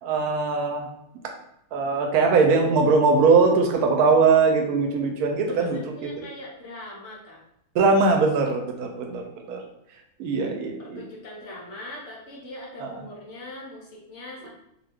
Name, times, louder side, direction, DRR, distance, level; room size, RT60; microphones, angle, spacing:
voice 1, 0.0-0.9 1.7-5.8 7.7-9.6 10.2-11.0 12.8-12.9, right 4 dB, 90° right, 3 dB, 1.1 m, -21 dB
voice 2, 5.5-7.4 8.8-9.0 10.4-10.5 10.8-14.5, left 1 dB, 60° left, -3 dB, 1.0 m, -41 dB
2.7 x 2.3 x 3.3 m, 0.78 s
omnidirectional pair, 1.5 m